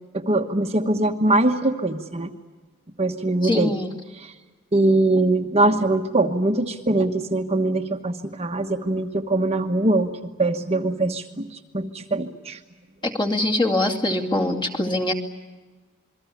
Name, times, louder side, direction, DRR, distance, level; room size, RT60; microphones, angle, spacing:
voice 1, 0.1-2.3 3.0-3.7 4.2-4.3 4.7-10.1 10.4-12.6, right 2 dB, 30° right, 4 dB, 1.2 m, -22 dB
voice 2, 3.4-3.9 13.0-15.1, left 1 dB, 20° left, 1 dB, 2.4 m, -23 dB
27.5 x 22.5 x 8.5 m, 1.4 s
head